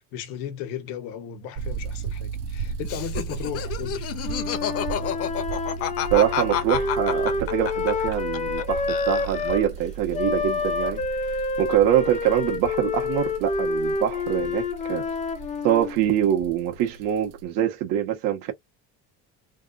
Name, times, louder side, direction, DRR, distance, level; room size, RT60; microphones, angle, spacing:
voice 1, 0.0-4.1, left 10 dB, 80° left, 1.1 m, -35 dB
sound 1, 1.5-17.4, right 6 dB, 50° right, 0.5 m, -36 dB
Laughter, 2.8-8.6 8.9-9.7, left 10 dB, 45° left, 0.8 m, -29 dB
Wind instrument woodwind instrument, 4.2-9.7 10.1-16.0, left 4 dB, 20° left, 0.5 m, -28 dB
voice 2, 6.1-11.0 11.6-15.1 15.6-18.5, right 11 dB, 75° right, 1.4 m, -24 dB
3.4 x 2.4 x 2.5 m
cardioid pair, 160°, 33 cm